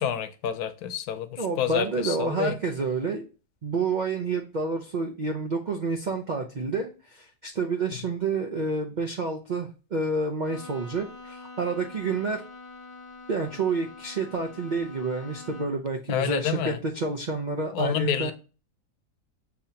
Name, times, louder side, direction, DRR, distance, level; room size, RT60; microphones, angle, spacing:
voice 1, 0.0-2.6 16.1-16.8 17.7-18.3, left 8 dB, 75° left, 1.0 m, -28 dB
voice 2, 1.4-3.2 3.6-12.4 13.3-18.3, right 4 dB, 85° right, 0.4 m, -29 dB
Bowed string instrument, 10.4-15.9, left 3 dB, 35° left, 0.5 m, -45 dB
6.9 x 2.8 x 2.7 m
omnidirectional pair, 1.7 m